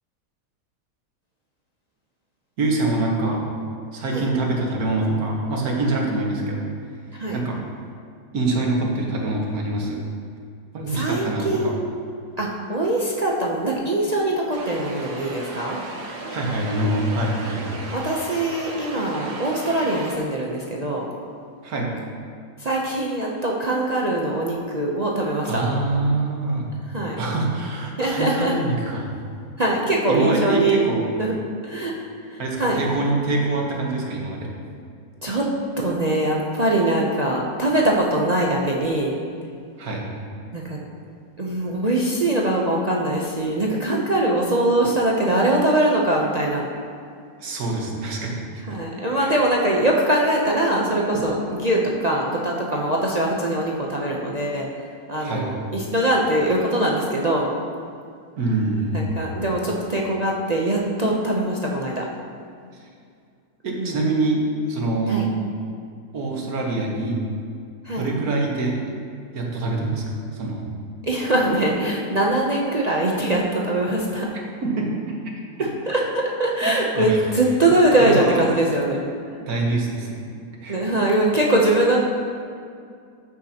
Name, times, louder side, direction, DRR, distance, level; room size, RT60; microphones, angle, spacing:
voice 1, 2.6-3.4 3.9-6.6 7.3-7.6 8.3-10.0 10.7-11.7 16.3-17.8 21.6-21.9 25.4-26.7 27.2-29.1 30.1-31.0 32.4-34.6 39.8-40.1 47.4-48.6 49.1-49.4 55.2-55.5 58.4-59.2 63.6-65.3 66.1-67.2 68.0-68.8 69.3-70.7 74.6-75.0 76.6-77.2 78.0-78.4 79.4-80.2 80.6-80.8, right 2 dB, 65° right, -1 dB, 1.7 m, -25 dB
voice 2, 10.9-12.1 12.4-15.8 17.9-21.1 22.6-25.6 26.9-27.2 28.0-28.6 29.6-30.8 31.2-31.3 31.6-32.8 35.2-35.5 35.8-39.2 40.5-40.8 41.4-46.6 48.7-54.7 55.1-57.5 58.9-62.1 63.8-64.0 65.1-65.3 67.8-68.0 71.0-74.3 75.6-79.0 80.7-82.0, right 1 dB, 45° right, -3 dB, 0.5 m, -22 dB
sound 1, 14.5-20.2, right 2 dB, 90° right, 1.7 m, -35 dB
14.0 x 6.3 x 2.9 m, 2.3 s
omnidirectional pair, 1.7 m